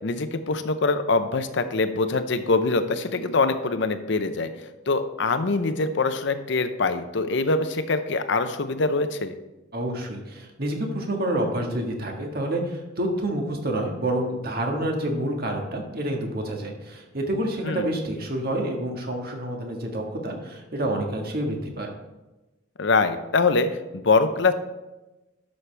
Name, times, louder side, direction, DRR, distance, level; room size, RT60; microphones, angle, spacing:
voice 1, 0.0-4.5 4.9-9.3 17.6-17.9 22.8-24.5, left 3 dB, 65° left, 10 dB, 0.7 m, -24 dB
voice 2, 9.7-21.9, right 1 dB, 55° right, 1 dB, 1.6 m, -28 dB
11.5 x 6.5 x 3.4 m, 1.0 s
head